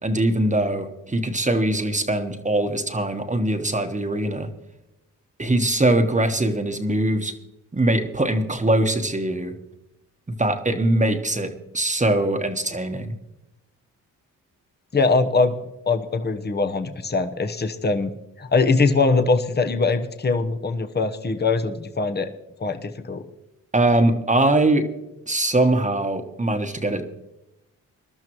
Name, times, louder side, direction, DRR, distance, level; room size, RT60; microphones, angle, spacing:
voice 1, 0.0-4.5 5.4-7.3 7.7-9.6 10.3-13.1 23.7-24.9 25.3-27.0, right 1 dB, 20° right, 5 dB, 1.3 m, -22 dB
voice 2, 14.9-15.6 15.9-22.3 22.6-23.2, left 3 dB, 30° left, 7 dB, 1.0 m, -22 dB
21.0 x 12.0 x 3.1 m, 0.91 s
supercardioid pair, 55°, 35 cm